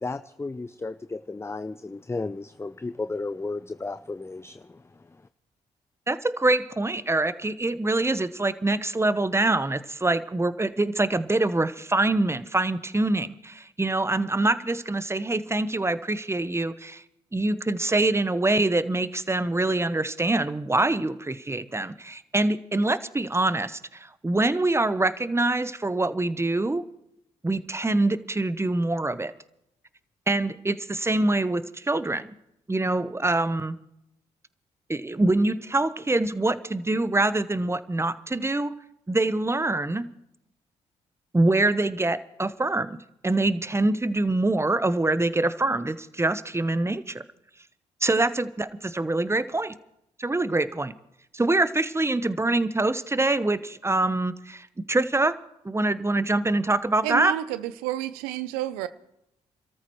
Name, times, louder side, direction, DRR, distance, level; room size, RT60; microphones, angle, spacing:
voice 1, 0.0-5.2, left 3 dB, 15° left, 12 dB, 0.6 m, -34 dB
voice 2, 6.1-17.0 17.3-26.8 27.4-29.3 30.3-32.3 32.7-33.8 34.9-38.8 39.1-40.1 41.3-43.0 43.2-47.2 48.0-49.8 50.2-50.9 51.3-55.4 55.6-57.3, right 2 dB, 15° right, 14 dB, 1.0 m, -25 dB
voice 3, 57.0-58.9, right 13 dB, 90° right, 15 dB, 0.6 m, -30 dB
28.5 x 13.5 x 3.1 m, 0.80 s
hypercardioid pair, 45°, 15 cm